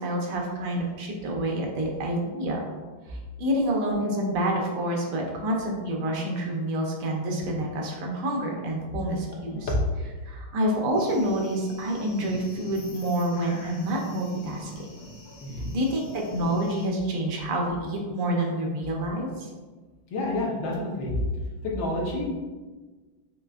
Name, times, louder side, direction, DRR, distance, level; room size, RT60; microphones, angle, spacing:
voice 1, 0.0-2.7 3.1-9.7 10.2-14.7 15.7-19.5, right 1 dB, 80° right, 0 dB, 1.7 m, -28 dB
sound 1, 11.0-16.9, left 2 dB, 80° left, 1.8 m, -44 dB
voice 2, 15.4-15.8 20.1-21.1 21.6-22.3, left 2 dB, 65° left, -3 dB, 1.6 m, -29 dB
6.3 x 3.2 x 2.4 m, 1.3 s
omnidirectional pair, 2.4 m